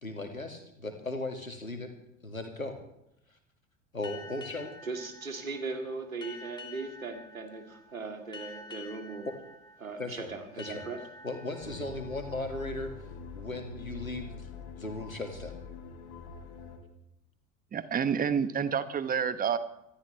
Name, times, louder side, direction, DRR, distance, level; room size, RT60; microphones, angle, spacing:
voice 1, 0.0-1.9 2.2-2.7 3.9-4.8 9.3-9.4 10.0-10.3 10.6-10.8 11.2-12.9 13.3-14.4 14.8-15.5, left 2 dB, 90° left, 5 dB, 2.2 m, -37 dB
sound 1, 4.0-13.3, left 3 dB, 10° left, 2.5 m, -49 dB
voice 2, 4.8-9.3 9.8-11.0, right 3 dB, 85° right, 4 dB, 2.4 m, -38 dB
sound 2, 11.6-16.8, left 5 dB, 50° left, 3.3 m, -45 dB
voice 3, 17.7-19.6, right 7 dB, 20° right, 12 dB, 1.2 m, -28 dB
25.5 x 13.0 x 3.4 m, 0.84 s
figure-of-eight pair, 75°, 40 cm